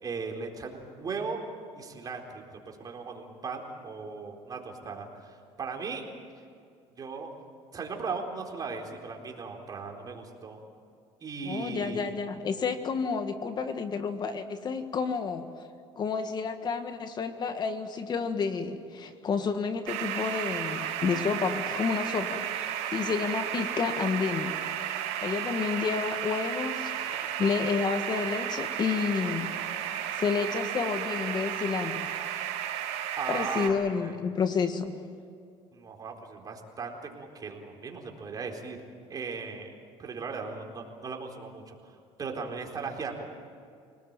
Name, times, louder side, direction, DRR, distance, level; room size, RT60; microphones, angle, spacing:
voice 1, 0.0-1.4 1.8-6.1 7.0-7.3 7.7-10.6 11.2-12.1 33.2-34.2 35.7-38.8 39.1-39.7 40.0-43.3, right 4 dB, 35° right, 2 dB, 4.2 m, -37 dB
voice 2, 11.4-15.5 16.0-24.6 25.2-29.5 30.1-32.2 33.3-35.0, left 5 dB, 40° left, 8 dB, 1.6 m, -30 dB
sound 1, 19.9-33.7, right 10 dB, 85° right, 5.0 m, -33 dB
27.0 x 19.0 x 9.0 m, 2.3 s
cardioid pair, 105°, 11 cm